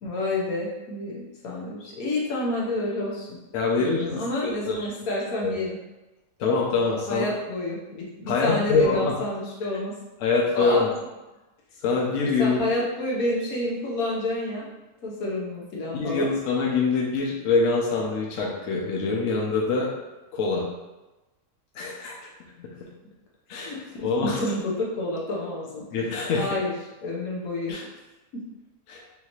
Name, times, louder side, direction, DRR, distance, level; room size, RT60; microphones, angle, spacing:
voice 1, 0.0-3.4 3.8-5.7 7.1-10.0 10.5-10.9 12.4-14.7 15.0-16.3 23.5-25.8 26.4-26.7 27.0-27.8 28.3-28.4, left 1 dB, 90° left, -4 dB, 1.5 m, -29 dB
voice 2, 3.5-4.8 5.4-5.5 6.4-7.2 8.3-9.1 10.2-10.9 11.8-12.6 15.9-19.9 20.3-20.7 21.7-22.3 22.6-22.7 23.5-23.7 24.0-24.4 25.9-26.6 27.7-27.8 28.9-29.0, left 4 dB, 70° left, -2 dB, 1.1 m, -24 dB
5.5 x 2.7 x 3.0 m, 1.1 s
omnidirectional pair, 1.5 m